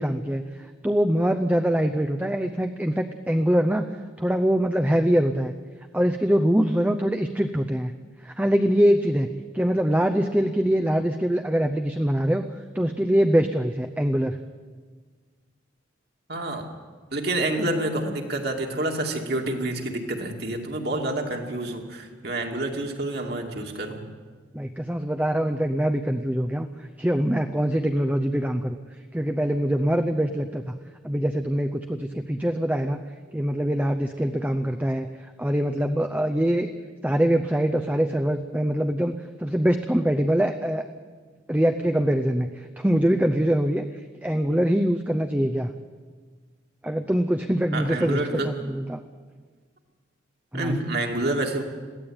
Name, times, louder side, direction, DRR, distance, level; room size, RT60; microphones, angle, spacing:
voice 1, 0.0-3.9 4.2-5.5 5.9-7.9 8.2-9.3 9.5-12.4 12.7-14.4 24.5-28.8 29.1-30.7 31.0-33.0 33.3-35.1 35.4-36.7 37.0-40.8 41.5-43.8 44.2-45.7 46.8-49.0 50.5-50.8, equal, 10° right, 6 dB, 0.6 m, -23 dB
voice 2, 16.3-16.7 17.1-24.1 47.7-48.5 50.5-51.6, right 2 dB, 55° right, 2 dB, 2.6 m, -28 dB
22.0 x 15.5 x 8.9 m, 1.5 s
head